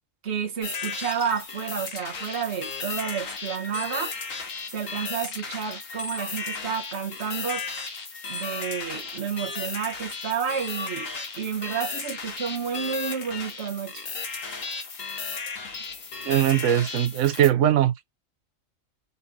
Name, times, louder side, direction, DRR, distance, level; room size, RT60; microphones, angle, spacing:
voice 1, 0.2-4.1 4.7-7.7 8.3-11.1 11.4-14.1, right 7 dB, 55° right, 1.5 m, -30 dB
sound 1, 0.6-17.5, left 4 dB, 90° left, 1.7 m, -35 dB
voice 2, 16.2-18.1, right 11 dB, 75° right, 1.0 m, -21 dB
4.1 x 4.0 x 2.7 m
omnidirectional pair, 1.3 m